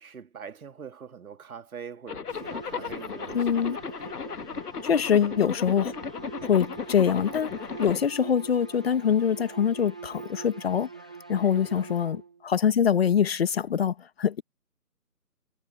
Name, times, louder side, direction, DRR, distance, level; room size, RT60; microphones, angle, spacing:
voice 1, 0.0-4.2 7.0-7.2 11.4-11.8, right 6 dB, 65° right, 2.5 m, -44 dB
Zipper (clothing), 2.1-8.0, left 6 dB, 75° left, 1.6 m, -36 dB
sound 1, 2.3-12.5, right 5 dB, 5° right, 0.6 m, -43 dB
voice 2, 3.3-3.8 4.8-5.9 6.4-10.9 11.3-14.4, left 8 dB, 40° left, 1.3 m, -24 dB
figure-of-eight pair, 155°, 47 cm